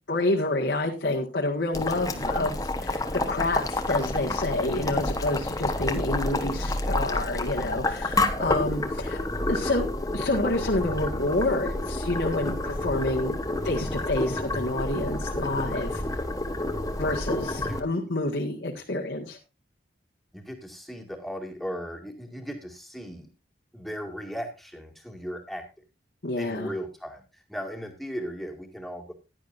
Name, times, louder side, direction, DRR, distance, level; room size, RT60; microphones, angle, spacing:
voice 1, 0.0-9.2 9.5-9.9 10.1-13.4 13.6-16.0 17.0-19.4 26.2-26.7, left 2 dB, 75° left, -2 dB, 1.8 m, -28 dB
Boiling, 1.7-17.8, left 2 dB, 20° left, 1.1 m, -29 dB
voice 2, 4.7-5.1 8.3-8.6 9.1-9.2 17.6-17.9 20.3-23.3 23.7-25.6 26.4-29.1, equal, ahead, 1 dB, 2.2 m, -37 dB
15.0 x 11.0 x 2.6 m, 0.29 s
head